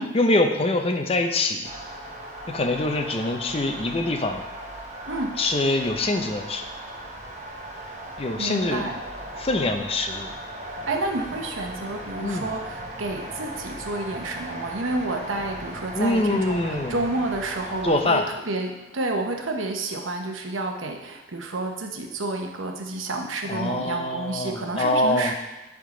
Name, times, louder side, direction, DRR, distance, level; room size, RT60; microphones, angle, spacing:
voice 1, 0.1-1.7 2.5-4.4 5.4-6.6 8.2-8.8 9.4-10.3 12.2-12.5 15.9-17.0 17.8-18.3 23.5-25.3, left 2 dB, 30° left, 5 dB, 0.5 m, -24 dB
sound 1, 1.6-18.0, right 1 dB, 35° right, 0.9 m, -38 dB
voice 2, 8.4-9.0 10.9-25.3, right 2 dB, 90° right, 3 dB, 0.9 m, -30 dB
10.0 x 3.7 x 3.8 m, 1.1 s
head